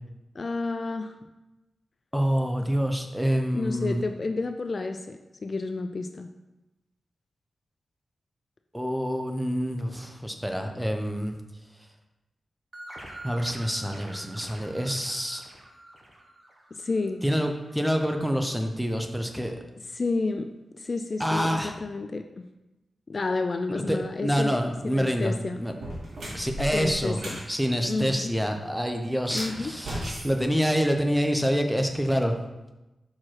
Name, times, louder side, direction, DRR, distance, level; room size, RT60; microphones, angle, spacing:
voice 1, 0.3-1.1 3.5-6.3 16.7-17.2 19.9-20.5 20.8-22.2 23.1-24.6 24.8-25.6 26.7-27.4 27.9-28.3 29.3-29.7, left 3 dB, 40° left, 6 dB, 0.3 m, -30 dB
voice 2, 2.1-4.0 8.7-11.3 13.2-15.4 17.2-19.6 21.2-21.8 23.7-25.3 25.6-25.7 26.3-27.2 27.5-32.3, equal, ahead, 4 dB, 0.7 m, -27 dB
sound 1, 12.7-17.1, right 1 dB, 25° right, 1.2 m, -45 dB
sound 2, 24.9-25.1 25.7-27.5 29.2-31.2, right 1 dB, 70° right, 2.4 m, -37 dB
5.8 x 4.8 x 4.5 m, 1.0 s
wide cardioid pair, 130°, 0 cm